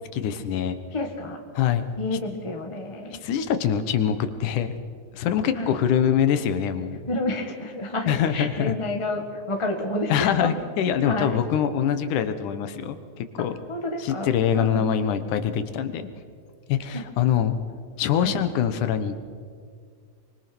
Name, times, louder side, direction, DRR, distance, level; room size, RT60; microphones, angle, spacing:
voice 1, 0.1-0.8 1.6-1.8 2.3-2.4 3.2-4.7 5.1-7.0 8.1-8.8 10.1-13.5 14.0-16.1 16.7-17.5 18.0-19.2, left 9 dB, 85° left, 10 dB, 2.7 m, -24 dB
voice 2, 0.9-1.4 1.9-3.2 4.0-4.2 5.5-5.8 7.1-10.5 11.0-11.4 13.4-14.3 14.5-14.9 16.9-17.0 18.2-18.4, left 2 dB, 15° left, 3 dB, 0.9 m, -30 dB
24.5 x 24.0 x 6.1 m, 2.1 s
omnidirectional pair, 3.5 m